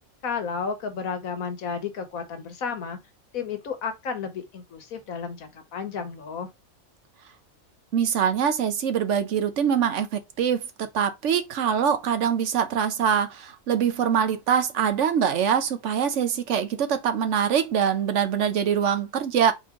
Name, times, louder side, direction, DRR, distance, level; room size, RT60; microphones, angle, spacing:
voice 1, 0.2-3.0 3.3-6.5, left 6 dB, 90° left, 1.4 m, -32 dB
voice 2, 7.9-19.5, right 8 dB, 65° right, 1.0 m, -24 dB
4.3 x 3.1 x 3.6 m
omnidirectional pair, 1.4 m